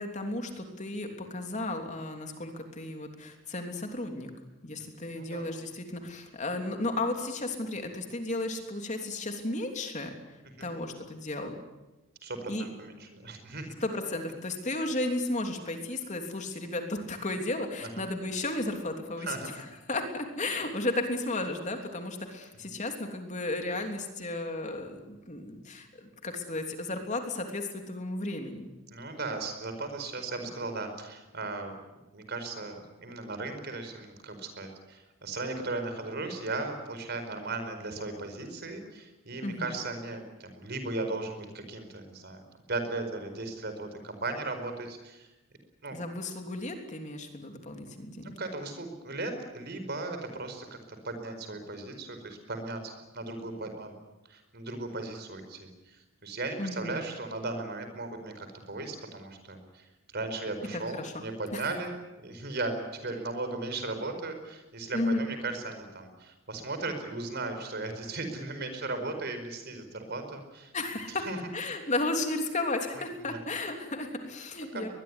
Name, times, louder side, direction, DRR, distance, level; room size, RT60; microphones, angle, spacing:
voice 1, 0.0-4.3 4.6-10.1 10.6-11.6 12.5-12.7 13.8-28.7 39.4-39.7 45.9-48.3 56.6-57.0 60.7-61.1 61.5-61.6 64.9-65.2 70.7-71.2 71.5-74.9, left 2 dB, 35° left, 4 dB, 3.2 m, -34 dB
voice 2, 12.2-13.7 19.2-19.5 28.9-31.7 32.1-42.4 42.7-45.3 45.8-46.0 48.2-53.9 54.3-59.9 60.1-70.7 71.1-71.4 73.3-73.4 74.7-74.9, right 3 dB, 50° right, 7 dB, 4.8 m, -37 dB
22.5 x 21.0 x 9.9 m, 1.1 s
head